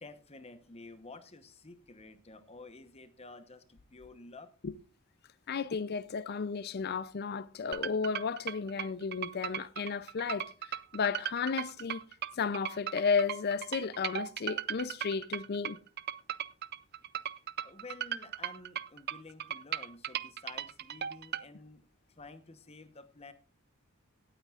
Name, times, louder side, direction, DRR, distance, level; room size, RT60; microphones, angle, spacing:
voice 1, 0.0-4.5 17.6-21.8 22.2-23.3, left 3 dB, 30° left, 1.0 m, -51 dB
voice 2, 5.5-12.0 12.4-15.8, left 5 dB, 50° left, 0.5 m, -33 dB
sound 1, 7.7-21.4, right 10 dB, 50° right, 0.4 m, -37 dB
17.5 x 9.0 x 2.4 m
head